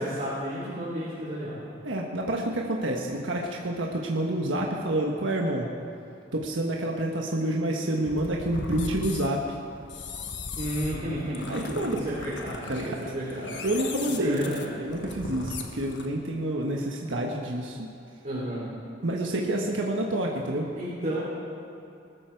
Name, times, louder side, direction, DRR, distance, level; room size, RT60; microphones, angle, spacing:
voice 1, 0.0-1.6 10.6-13.5 14.2-14.7 18.2-18.7 20.7-21.2, equal, 40° right, -8 dB, 3.3 m, -32 dB
voice 2, 1.8-5.7 6.3-9.6 11.5-12.2 12.7-13.0 13.6-14.5 14.8-17.9 19.0-20.7, right 1 dB, 90° right, 0 dB, 1.3 m, -28 dB
sound 1, 8.1-16.1, left 3 dB, 70° left, 1.3 m, -38 dB
20.5 x 13.0 x 4.7 m, 2.7 s
head